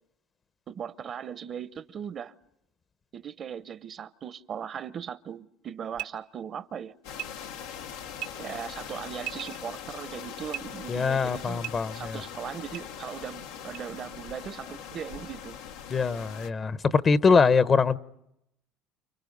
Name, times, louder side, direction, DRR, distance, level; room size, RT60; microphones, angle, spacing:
voice 1, 0.7-2.3 3.1-6.9 8.3-11.6 11.9-15.6, right 8 dB, 45° right, 0.9 m, -38 dB
sound 1, 5.9-6.1 7.2-7.3 8.2-8.3 9.2-9.6 10.5-10.6 11.6-11.7 12.7-12.8 13.7-13.8, right 14 dB, 80° right, 1.2 m, -36 dB
sound 2, 7.0-16.5, left 8 dB, 85° left, 1.3 m, -41 dB
voice 2, 10.9-12.2 15.9-18.0, left 5 dB, 35° left, 0.9 m, -23 dB
30.0 x 29.0 x 5.4 m
supercardioid pair, 95°, 0 cm